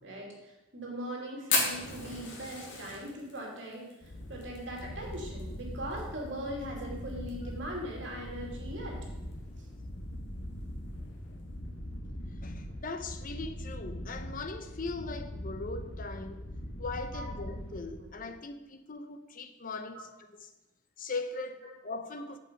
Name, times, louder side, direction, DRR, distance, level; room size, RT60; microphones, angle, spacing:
voice 1, 0.0-3.9 4.3-9.0 17.1-17.2 18.0-18.1 19.9-20.0, equal, 65° right, 2.8 m, -40 dB
Fire, 1.5-6.0 6.3-6.4 6.6-6.7 7.1-7.5 8.0-8.1 9.2-9.3, left 3 dB, 70° left, 2.5 m, -33 dB
sound 1, 4.0-18.3, equal, 85° left, 1.3 m, -41 dB
voice 2, 12.4-16.5 16.8-20.5 21.0-22.4, left 3 dB, 45° left, 0.8 m, -40 dB
8.3 x 8.0 x 5.2 m
head